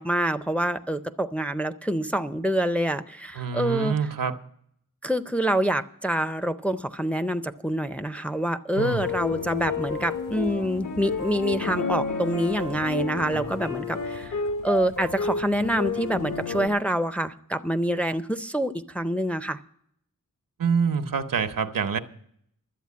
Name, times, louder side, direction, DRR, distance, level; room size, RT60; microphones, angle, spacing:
voice 1, 0.0-4.0 5.0-14.4 14.6-19.6, right 1 dB, 5° left, 0.4 m, -26 dB
voice 2, 3.4-4.4 8.7-9.0 20.6-22.0, right 6 dB, 90° right, 0.9 m, -26 dB
sound 1, 8.8-16.7, left 5 dB, 70° left, 1.3 m, -31 dB
12.0 x 8.2 x 8.3 m
wide cardioid pair, 115°, 33 cm